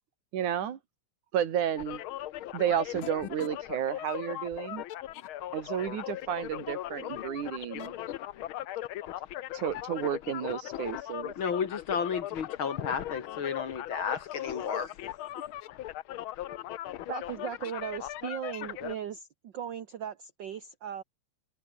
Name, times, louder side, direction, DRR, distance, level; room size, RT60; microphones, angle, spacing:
voice 1, 0.3-0.8 1.3-2.0 2.5-4.8 5.5-7.9 9.5-11.3, right 9 dB, 85° right, 3.5 m, -32 dB
sound 1, 1.8-19.0, left 13 dB, 80° left, 1.1 m, -39 dB
voice 2, 11.4-14.9, left 6 dB, 50° left, 2.1 m, -32 dB
voice 3, 17.1-21.0, right 9 dB, 60° right, 1.2 m, -37 dB
omnidirectional pair, 3.4 m